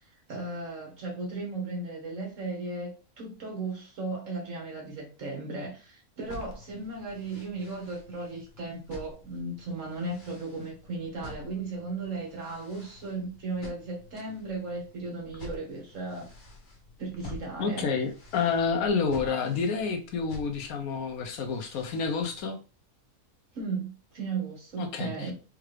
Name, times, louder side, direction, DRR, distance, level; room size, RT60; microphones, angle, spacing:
voice 1, 0.3-16.3 17.0-17.8 23.5-25.3, right 3 dB, 65° right, 1.5 m, -36 dB
sound 1, 6.2-22.4, left 2 dB, 50° left, 1.1 m, -49 dB
voice 2, 17.6-22.6 24.8-25.3, left 5 dB, 80° left, 1.1 m, -29 dB
4.6 x 2.4 x 3.2 m
omnidirectional pair, 1.5 m